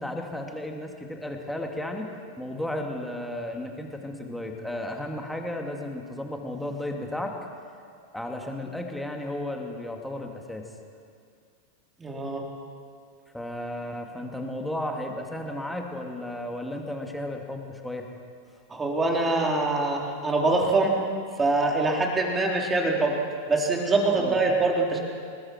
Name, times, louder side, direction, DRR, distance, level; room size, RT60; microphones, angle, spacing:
voice 1, 0.0-2.1 2.4-7.3 8.1-10.7 13.3-18.1 24.1-24.4, left 1 dB, ahead, 2 dB, 2.5 m, -34 dB
voice 2, 12.0-12.4 18.7-21.0 21.4-23.2 23.5-25.0, right 3 dB, 15° right, 0 dB, 3.7 m, -24 dB
29.0 x 20.0 x 4.6 m, 2.3 s
figure-of-eight pair, 90°, 0 cm